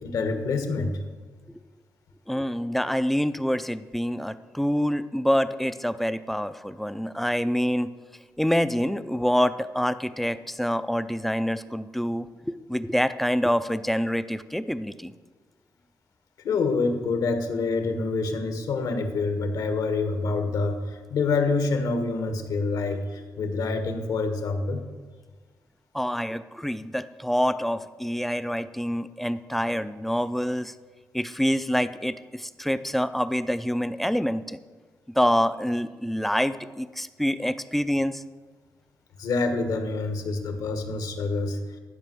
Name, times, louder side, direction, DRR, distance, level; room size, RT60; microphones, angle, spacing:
voice 1, 0.0-0.9 16.4-24.8 39.2-41.6, left 3 dB, 75° left, 6 dB, 1.4 m, -26 dB
voice 2, 2.3-7.9 8.4-15.1 25.9-30.7 31.1-34.6 35.2-38.2, equal, 5° left, 13 dB, 0.3 m, -26 dB
12.5 x 5.4 x 7.6 m, 1.4 s
wide cardioid pair, 155°, 6 cm